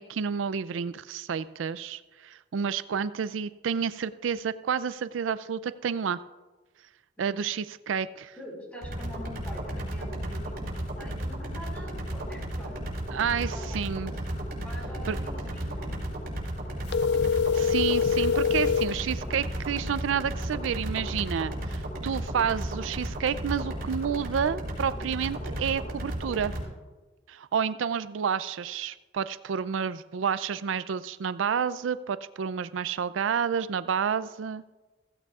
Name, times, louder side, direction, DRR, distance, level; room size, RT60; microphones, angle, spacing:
voice 1, 0.0-6.2 7.2-8.4 13.1-14.1 15.1-15.2 17.5-26.5 27.3-34.6, right 7 dB, 90° right, 15 dB, 0.4 m, -30 dB
voice 2, 7.2-7.5 8.3-10.6 11.0-12.8 13.3-13.8 14.5-16.3, left 1 dB, 10° left, -2 dB, 4.8 m, -45 dB
sound 1, 8.8-26.6, right 1 dB, 55° right, 4.9 m, -34 dB
sound 2, 16.9-19.0, left 6 dB, 60° left, 0.4 m, -24 dB
16.0 x 16.0 x 2.4 m, 1.2 s
head